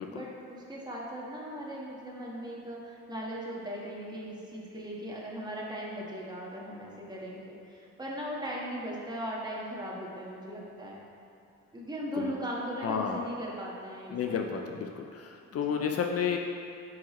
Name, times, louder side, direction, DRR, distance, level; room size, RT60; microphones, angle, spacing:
voice 1, 0.1-11.0 11.7-14.4 15.5-15.9, equal, 15° right, -4 dB, 1.4 m, -38 dB
voice 2, 12.8-13.3 14.1-16.4, left 7 dB, 55° left, 2 dB, 0.5 m, -31 dB
8.4 x 4.8 x 3.1 m, 2.6 s
cardioid pair, 90°, 30 cm